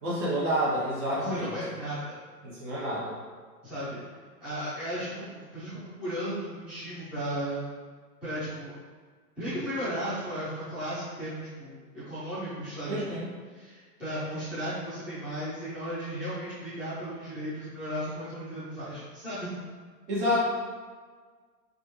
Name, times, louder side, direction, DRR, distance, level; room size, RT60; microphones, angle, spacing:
voice 1, 0.0-1.5 2.4-3.1 12.9-13.3 20.1-20.4, equal, 45° right, -6 dB, 1.3 m, -28 dB
voice 2, 1.1-2.1 3.6-4.0 4.4-7.7 8.2-8.7 9.4-13.0 13.5-19.5, equal, ahead, -15 dB, 0.5 m, -35 dB
3.1 x 2.5 x 2.9 m, 1.5 s
figure-of-eight pair, 115°, 50 cm